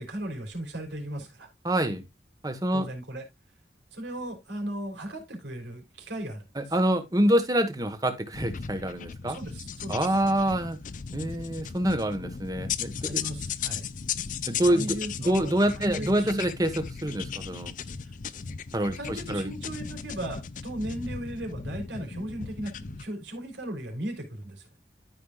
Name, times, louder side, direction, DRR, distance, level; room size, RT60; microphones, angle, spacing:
voice 1, 0.0-1.5 2.7-3.2 3.9-6.7 9.3-10.2 13.0-13.8 14.6-16.4 19.0-24.7, right 1 dB, 90° right, 3.6 m, -37 dB
voice 2, 1.6-2.0 2.4-2.9 6.6-9.4 9.9-10.8 11.1-13.4 14.5-17.7 18.7-19.5, right 1 dB, 20° right, 1.2 m, -26 dB
sound 1, 8.3-23.1, left 7 dB, 45° left, 0.5 m, -37 dB
13.0 x 5.4 x 2.4 m
head